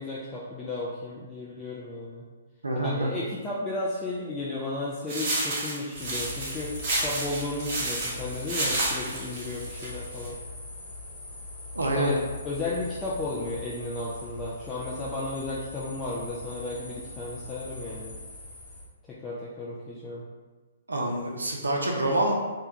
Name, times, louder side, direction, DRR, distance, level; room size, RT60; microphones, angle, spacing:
voice 1, 0.0-2.3 2.8-10.4 11.9-12.2 12.4-18.2 19.1-20.2, left 2 dB, 15° left, -7 dB, 0.3 m, -34 dB
voice 2, 2.6-3.1 11.7-12.1 20.9-22.3, right 1 dB, 75° right, 0 dB, 0.4 m, -26 dB
sound 1, 5.1-10.3, right 2 dB, 35° right, 0.9 m, -31 dB
sound 2, 5.9-18.8, left 2 dB, 35° left, 0.7 m, -41 dB
2.2 x 2.2 x 2.8 m, 1.3 s
figure-of-eight pair, 125°, 0 cm